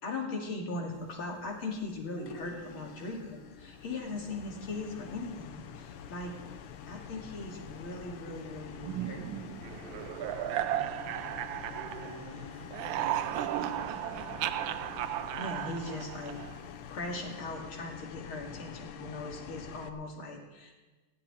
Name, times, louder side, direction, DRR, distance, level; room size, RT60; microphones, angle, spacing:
voice 1, 0.0-6.3 6.9-9.2 15.4-16.4 16.9-20.7, left 2 dB, 70° left, 0 dB, 3.2 m, -39 dB
sound 1, 0.9-17.5, right 3 dB, 15° left, 3.5 m, -57 dB
sound 2, 2.3-19.9, left 8 dB, 90° left, 1.7 m, -46 dB
sound 3, 8.8-12.3 12.6-16.7, right 12 dB, 75° right, 1.3 m, -35 dB
voice 2, 10.5-14.4, left 1 dB, 50° right, -6 dB, 5.7 m, -52 dB
15.5 x 7.4 x 10.0 m, 1.2 s
omnidirectional pair, 2.4 m